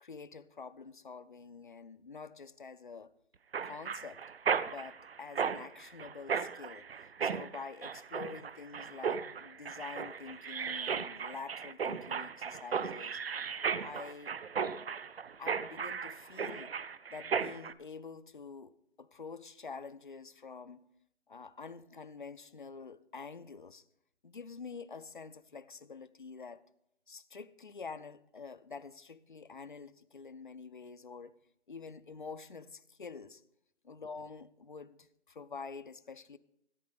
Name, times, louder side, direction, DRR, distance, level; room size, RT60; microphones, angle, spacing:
voice 1, 0.0-3.1 3.6-4.2 4.6-6.9 7.2-13.2 13.8-14.3 15.4-16.7 17.1-20.8 21.3-23.8 24.2-26.6 27.1-31.3 31.7-33.4 33.8-36.4, left 5 dB, 45° left, 0.4 m, -47 dB
Mechanisms, 3.5-17.7, right 6 dB, 55° right, 0.5 m, -36 dB
14.0 x 8.6 x 5.0 m
hypercardioid pair, 175°, 35 cm